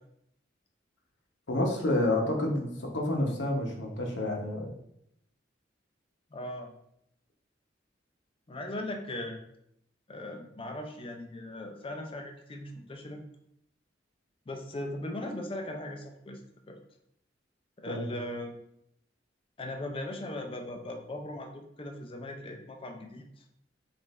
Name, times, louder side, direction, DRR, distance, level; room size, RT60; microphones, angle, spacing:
voice 1, 1.5-4.7 17.9-18.1, left 1 dB, 65° left, 1 dB, 0.9 m, -29 dB
voice 2, 6.3-6.7 8.5-9.4 10.1-13.2 14.5-16.4 16.7-16.8 17.8-18.6 19.6-23.3, left 1 dB, 30° left, 3 dB, 0.5 m, -39 dB
5.1 x 2.6 x 3.1 m, 0.75 s
head